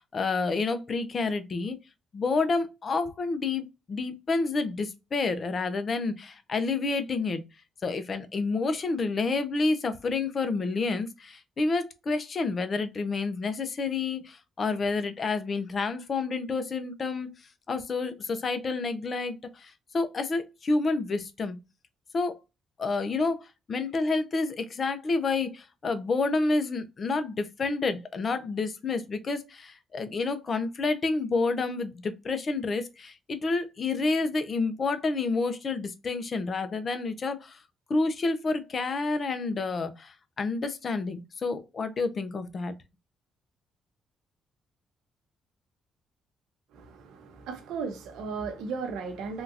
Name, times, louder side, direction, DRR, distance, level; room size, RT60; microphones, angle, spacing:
voice 1, 0.0-1.8 2.1-7.4 7.8-17.3 17.7-21.6 22.1-22.4 22.8-37.6 37.9-42.7, left 3 dB, 45° left, 0.6 m, -29 dB
voice 2, 46.7-49.4, right 5 dB, 85° right, 0.7 m, -36 dB
3.6 x 2.4 x 2.7 m
cardioid pair, 90°, 0 cm